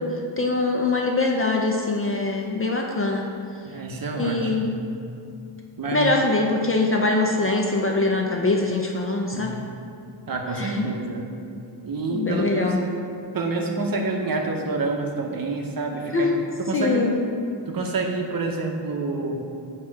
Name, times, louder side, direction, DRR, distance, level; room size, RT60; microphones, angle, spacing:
voice 1, 0.4-3.3 4.2-4.8 5.9-9.5 10.6-10.8 12.1-12.8 16.1-16.4 16.7-17.1, left 3 dB, 30° left, 1 dB, 0.4 m, -23 dB
voice 2, 3.6-4.8 5.8-6.1 9.3-9.5 10.3-11.2 11.8-12.8 13.3-16.3 16.6-17.1 17.7-19.4, right 3 dB, 45° right, 2 dB, 0.7 m, -27 dB
7.4 x 2.9 x 4.6 m, 2.6 s
wide cardioid pair, 120°, 47 cm